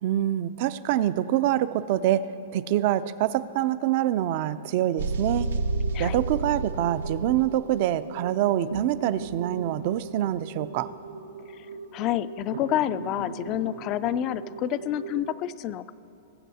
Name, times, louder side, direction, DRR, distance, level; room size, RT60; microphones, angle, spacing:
voice 1, 0.0-2.3 2.5-5.5 6.0-10.9, right 12 dB, 50° right, 15 dB, 0.4 m, -25 dB
sound 1, 5.0-15.3, right 3 dB, 90° right, 0.7 m, -34 dB
voice 2, 11.9-15.9, left 12 dB, 35° left, 15 dB, 0.3 m, -28 dB
21.5 x 7.6 x 2.8 m, 3.0 s
hypercardioid pair, 140°, 0 cm